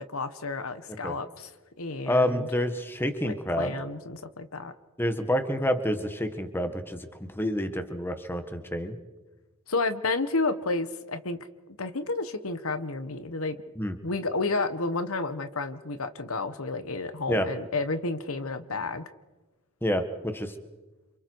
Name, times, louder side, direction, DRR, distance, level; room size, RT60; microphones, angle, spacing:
voice 1, 0.0-1.5 1.8-2.5 3.2-4.7 9.7-11.4 11.7-13.6 14.0-19.0, left 3 dB, 70° left, 10 dB, 1.3 m, -31 dB
voice 2, 2.1-3.7 5.0-7.1 7.3-9.0 13.8-13.9 17.3-17.5 19.8-20.5, equal, 10° left, 8 dB, 1.6 m, -28 dB
29.0 x 27.0 x 4.8 m, 1.2 s
head